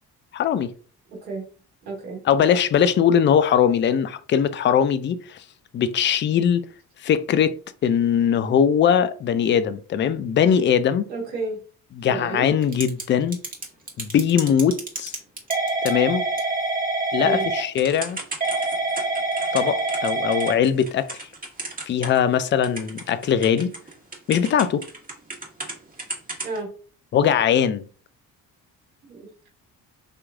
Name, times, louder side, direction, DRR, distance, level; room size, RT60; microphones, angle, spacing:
voice 1, 0.3-0.7 2.3-5.4 5.7-6.6 7.0-7.5 7.8-11.1 12.0-13.4 14.0-15.1 15.8-16.2 17.1-18.2 19.5-21.3 21.9-23.7 24.3-24.8 27.1-27.8, left 8 dB, 25° left, 0.3 m, -20 dB
voice 2, 1.1-1.4 1.8-2.2 11.1-11.6 12.0-12.5 17.2-17.4 26.4-26.7 29.1-29.5, right 3 dB, 85° right, 1.1 m, -31 dB
Typing / Telephone, 12.6-13.0 13.3-22.3 22.6-25.7 26.0-26.6, right 2 dB, 15° right, 1.4 m, -27 dB
5.0 x 3.0 x 2.3 m
hypercardioid pair, 40°, 48 cm